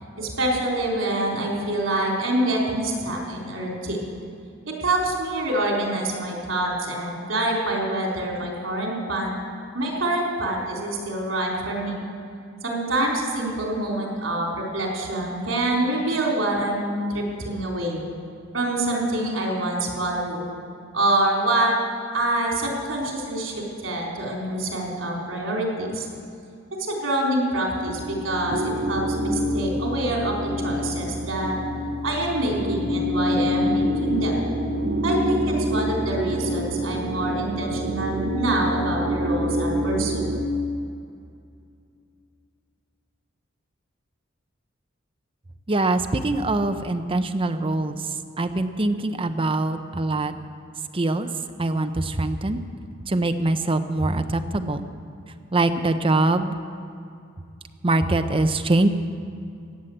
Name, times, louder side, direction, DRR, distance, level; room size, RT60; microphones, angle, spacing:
voice 1, 0.2-4.0 4.7-9.4 9.7-12.0 12.6-18.0 18.5-20.5 20.9-21.7 22.1-26.1 26.8-31.6 32.0-34.3 35.0-40.2, right 1 dB, 75° right, -1 dB, 3.8 m, -26 dB
sound 1, 27.8-40.5, equal, 50° right, 1.1 m, -26 dB
voice 2, 45.7-48.0 48.4-50.3 50.9-51.3 51.6-52.6 53.1-54.9 55.5-56.5 57.8-58.9, right 2 dB, 25° right, 8 dB, 0.8 m, -23 dB
16.5 x 10.0 x 7.8 m, 2.4 s
head